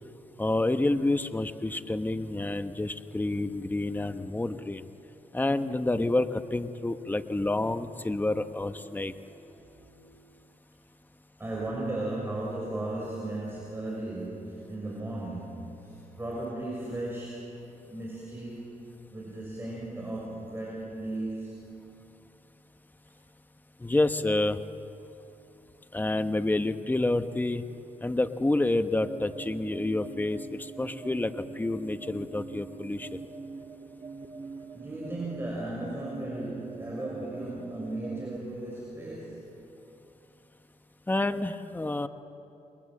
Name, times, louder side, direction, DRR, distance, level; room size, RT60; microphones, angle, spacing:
voice 1, 0.4-4.8 5.3-9.1 23.8-24.6 25.9-27.6 28.0-33.1 41.1-42.1, left 2 dB, 15° left, 9 dB, 1.0 m, -28 dB
voice 2, 8.2-8.6 9.0-9.9 11.4-18.8 19.1-21.8 34.7-39.6, right 2 dB, 15° right, -4 dB, 6.3 m, -36 dB
sound 1, 28.9-38.4, right 4 dB, 35° right, 0.8 m, -43 dB
29.0 x 23.0 x 7.7 m, 2.8 s
cardioid pair, 95°, 14 cm